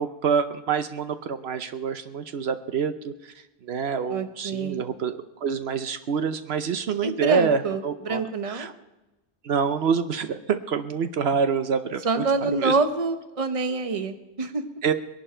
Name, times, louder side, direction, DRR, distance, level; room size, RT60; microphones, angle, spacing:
voice 1, 0.0-3.3 3.6-8.2 8.5-8.7 9.4-12.8 14.8-14.9, right 6 dB, 75° right, 9 dB, 1.0 m, -26 dB
voice 2, 4.1-4.9 7.0-8.7 12.0-14.6, right 3 dB, 35° right, 8 dB, 1.0 m, -26 dB
21.5 x 11.5 x 4.4 m, 1.0 s
omnidirectional pair, 1.1 m